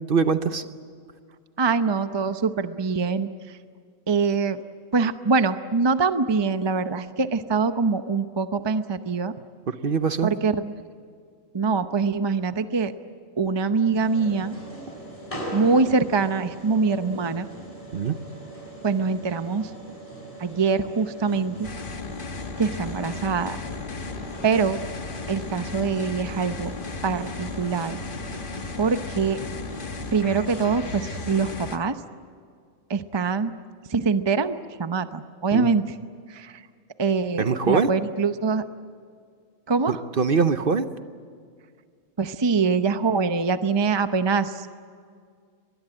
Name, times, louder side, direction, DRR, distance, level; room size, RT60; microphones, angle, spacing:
voice 1, 0.1-0.6 9.7-10.3 17.9-18.2 35.5-35.7 37.4-37.9 39.9-40.9, right 5 dB, 45° right, 10 dB, 1.0 m, -23 dB
voice 2, 1.6-3.6 4.1-4.6 4.9-9.3 10.2-10.7 11.5-12.9 13.4-14.6 15.5-17.5 18.8-19.7 20.4-21.7 22.6-23.6 24.4-24.8 25.3-26.7 27.0-28.0 28.8-29.4 30.1-32.0 32.9-33.5 33.9-36.0 36.3-36.6 37.0-38.6 39.7-40.0 42.2-44.7, right 4 dB, 25° right, 10 dB, 0.7 m, -24 dB
sound 1, 13.9-31.6, right 1 dB, 25° left, 6.2 m, -40 dB
sound 2, 21.6-31.8, left 4 dB, 45° left, 1.4 m, -36 dB
24.0 x 21.0 x 8.9 m, 2.1 s
omnidirectional pair, 1.4 m